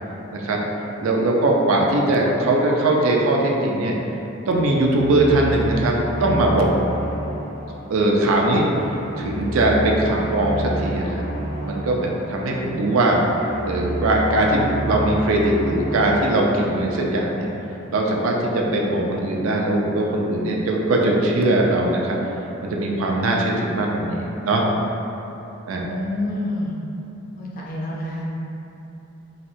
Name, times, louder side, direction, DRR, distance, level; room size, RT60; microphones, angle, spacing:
voice 1, 0.3-0.6 1.0-4.0 4.5-6.8 7.9-8.7 9.2-11.3 11.6-13.2 13.7-17.5 17.9-22.2 22.6-24.7 25.7-26.0, right 1 dB, 80° right, -1 dB, 0.4 m, -20 dB
sound 1, 4.5-17.6, right 1 dB, 80° left, 1.4 m, -31 dB
voice 2, 25.9-26.8 27.4-28.3, left 1 dB, 40° left, -4 dB, 0.5 m, -28 dB
4.1 x 2.0 x 2.6 m, 3.0 s
head